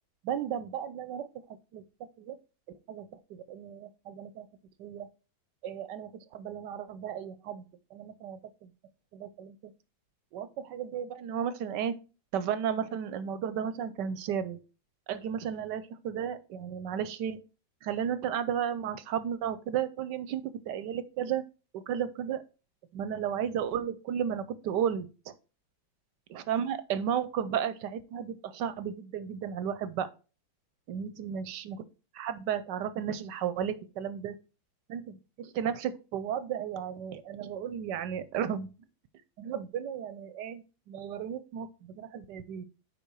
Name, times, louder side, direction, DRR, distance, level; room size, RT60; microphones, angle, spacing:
voice 1, 0.2-1.3 1.7-1.8 2.2-2.4 2.9-4.5 4.8-5.1 5.6-7.7 7.9-8.7 9.1-9.7 10.3-12.0 12.3-14.6 15.1-17.4 17.8-21.4 21.7-22.4 22.9-25.3 26.3-30.1 30.9-31.8 32.1-34.4 34.9-38.7 39.4-42.6, right 8 dB, 75° right, 13 dB, 1.1 m, -34 dB
9.4 x 3.9 x 4.5 m, 0.34 s
omnidirectional pair, 2.1 m